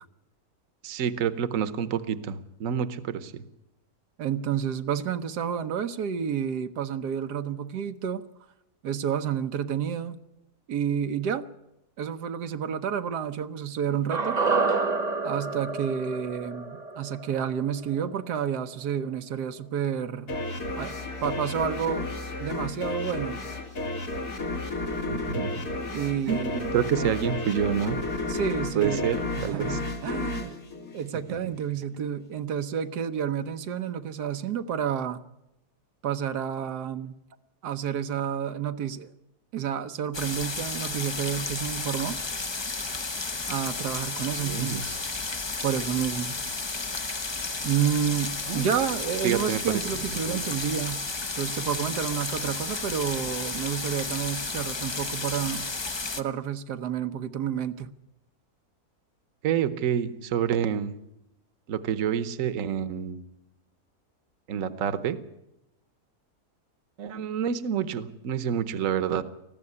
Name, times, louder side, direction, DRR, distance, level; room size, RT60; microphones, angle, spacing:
voice 1, 0.8-3.4 25.1-25.6 26.3-28.0 28.7-29.8 31.3-31.4 44.4-44.8 48.5-48.7 49.2-49.8 50.1-50.4 59.4-60.9 61.7-63.2 64.5-65.2 67.0-69.2, right 8 dB, 60° right, 14 dB, 1.3 m, -28 dB
voice 2, 4.2-8.2 8.8-10.2 10.7-11.5 12.0-14.4 15.2-20.4 20.8-22.1 22.4-23.4 25.9-27.1 28.3-29.1 29.4-30.5 30.9-35.2 36.0-37.1 37.6-39.1 39.5-42.2 43.5-45.0 45.6-46.4 47.6-51.0 51.4-55.7 56.2-57.9, right 8 dB, 90° right, 9 dB, 1.5 m, -30 dB
sound 1, 14.1-18.4 18.7-18.8, right 4 dB, 30° right, 1.0 m, -29 dB
sound 2, 20.3-31.6, left 2 dB, 75° left, 2.9 m, -32 dB
sound 3, 40.1-56.2, left 3 dB, 30° left, 0.5 m, -32 dB
19.5 x 14.5 x 9.7 m, 0.89 s
omnidirectional pair, 1.7 m